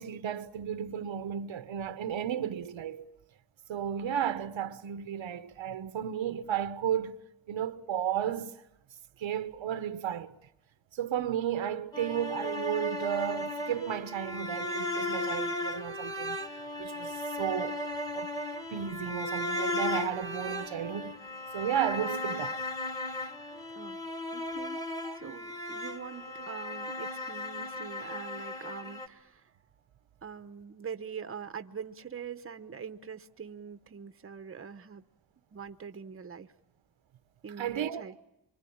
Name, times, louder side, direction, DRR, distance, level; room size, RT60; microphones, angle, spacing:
voice 1, 0.0-3.1 3.7-7.2 7.5-8.6 9.2-10.4 10.9-16.4 16.8-17.8 18.1-18.3 18.7-21.2 21.5-22.6 25.0-25.4 37.6-38.2, right 9 dB, 90° right, 1.2 m, -33 dB
sound 1, 11.9-29.1, left 1 dB, 10° left, 1.4 m, -36 dB
voice 2, 24.3-24.8 25.1-29.5 30.2-35.0 35.5-36.5 37.4-38.1, right 7 dB, 30° right, 0.9 m, -43 dB
25.5 x 25.0 x 8.7 m
wide cardioid pair, 125°, 45 cm